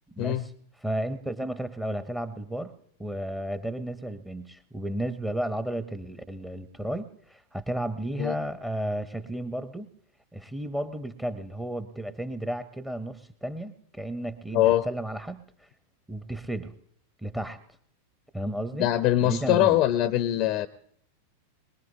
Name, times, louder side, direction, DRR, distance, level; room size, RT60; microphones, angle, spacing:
voice 1, 0.1-0.5 0.8-2.7 3.0-9.9 10.3-15.7 16.1-16.7 17.2-17.6 18.3-18.9 19.2-19.8, right 1 dB, 5° right, 13 dB, 0.7 m, -33 dB
voice 2, 14.5-14.8 18.8-20.7, left 14 dB, 40° left, 14 dB, 0.6 m, -22 dB
22.0 x 20.5 x 2.7 m, 0.64 s
figure-of-eight pair, 90°, 0 cm